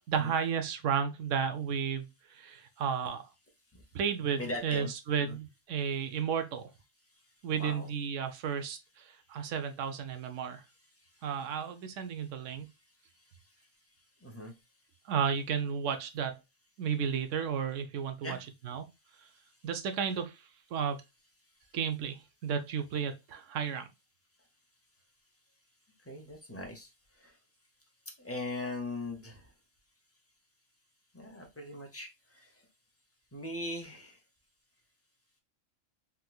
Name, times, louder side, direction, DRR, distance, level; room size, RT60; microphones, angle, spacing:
voice 1, 0.1-3.2 3.9-6.6 7.4-10.6 11.2-12.7 15.1-16.4 16.8-18.4 18.6-18.9 19.6-20.3 20.7-21.0 21.7-23.9, right 7 dB, 70° right, 0.9 m, -33 dB
voice 2, 4.4-4.9 5.2-5.4 7.5-7.9 10.7-11.3 12.2-12.8 13.1-13.7 14.2-14.6 18.2-18.4 19.3-19.7 26.0-27.4 28.2-29.5 31.1-32.7 33.3-34.2, left 2 dB, 15° left, 0.5 m, -41 dB
3.5 x 2.9 x 2.2 m
omnidirectional pair, 1.4 m